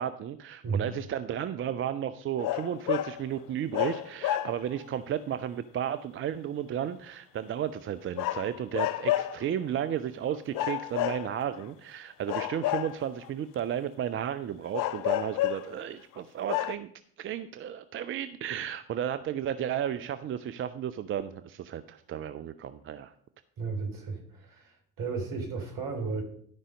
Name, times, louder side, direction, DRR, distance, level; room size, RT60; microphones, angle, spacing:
voice 1, 0.0-16.9 17.2-23.1, right 10 dB, 30° right, 12 dB, 0.5 m, -33 dB
sound 1, 2.4-3.2 3.7-4.8 8.2-9.4 10.5-11.6 12.3-13.3 14.7-15.8 16.2-16.3 16.5-16.7, left 14 dB, 50° left, 0.6 m, -30 dB
voice 2, 23.6-26.2, right 5 dB, 50° right, 3 dB, 3.3 m, -34 dB
12.5 x 5.5 x 5.2 m, 0.62 s
figure-of-eight pair, 60°, 43 cm